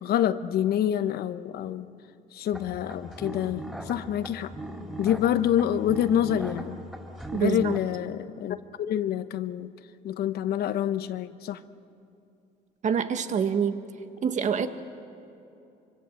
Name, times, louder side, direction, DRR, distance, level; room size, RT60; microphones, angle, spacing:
voice 1, 0.0-1.9 2.3-4.5 5.0-6.8 7.3-9.7 10.0-11.6, left 10 dB, 65° left, 12 dB, 1.0 m, -27 dB
sound 1, 2.5-7.8, equal, 5° right, 3.8 m, -39 dB
voice 2, 7.3-7.8 12.8-13.8 14.2-14.7, right 7 dB, 45° right, 9 dB, 1.5 m, -26 dB
25.0 x 25.0 x 7.5 m, 2.7 s
cardioid pair, 110°, 17 cm